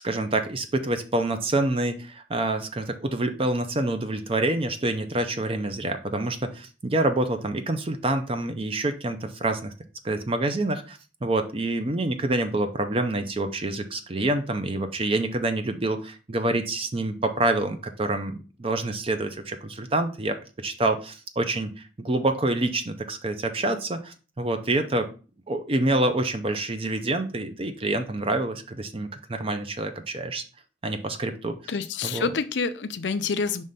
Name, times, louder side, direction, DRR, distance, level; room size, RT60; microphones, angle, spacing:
voice 1, 0.0-9.7 10.0-25.1 25.5-30.4 30.8-31.7 32.0-32.3, right 2 dB, 30° right, 8 dB, 0.5 m, -27 dB
voice 2, 31.7-33.6, left 5 dB, 85° left, 11 dB, 0.6 m, -27 dB
5.5 x 3.2 x 5.3 m, 0.35 s
head